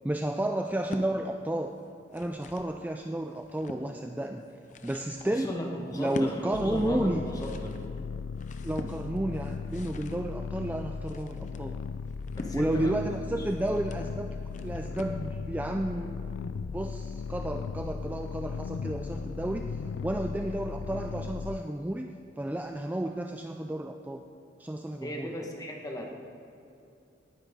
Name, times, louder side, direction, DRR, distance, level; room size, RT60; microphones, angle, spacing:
voice 1, 0.0-1.7 2.1-4.4 4.8-5.5 6.0-7.2 8.6-11.8 12.5-14.3 14.6-16.3 16.7-19.7 20.0-22.1 22.4-24.2 24.6-25.3, right 1 dB, 10° right, 4 dB, 0.3 m, -32 dB
sound 1, 0.6-1.1 1.9-2.8 3.2-3.9 4.4-15.3, left 2 dB, 40° left, 0.7 m, -44 dB
voice 2, 5.2-7.8 12.3-13.5 25.0-26.1, equal, 20° left, 0 dB, 1.4 m, -37 dB
sound 2, 6.5-21.6, left 5 dB, 85° left, 0.3 m, -37 dB
18.5 x 10.0 x 3.7 m, 2.6 s
head